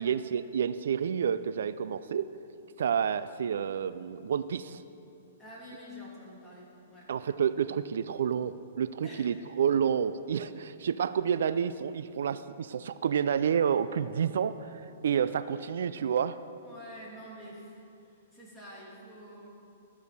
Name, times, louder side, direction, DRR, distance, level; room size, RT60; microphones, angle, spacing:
voice 1, 0.0-2.3 2.8-4.8 7.1-16.4, right 8 dB, 75° right, 14 dB, 0.3 m, -29 dB
voice 2, 5.4-7.1 9.0-9.3 16.6-19.5, equal, 5° left, -7 dB, 2.7 m, -47 dB
13.5 x 5.0 x 6.7 m, 2.7 s
hypercardioid pair, 150°, 0 cm